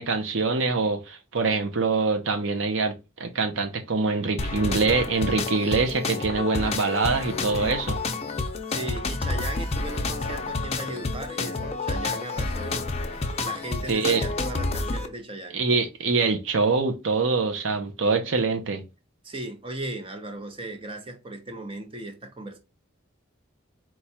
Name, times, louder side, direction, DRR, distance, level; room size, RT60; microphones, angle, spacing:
voice 1, 0.0-2.9 3.2-8.0 13.9-14.2 15.5-18.8, right 4 dB, 70° right, 0.7 m, -24 dB
sound 1, 4.4-15.1, left 3 dB, 30° left, 0.6 m, -29 dB
voice 2, 8.7-15.6 19.2-22.6, right 1 dB, 25° right, 0.8 m, -37 dB
4.5 x 2.4 x 4.1 m
head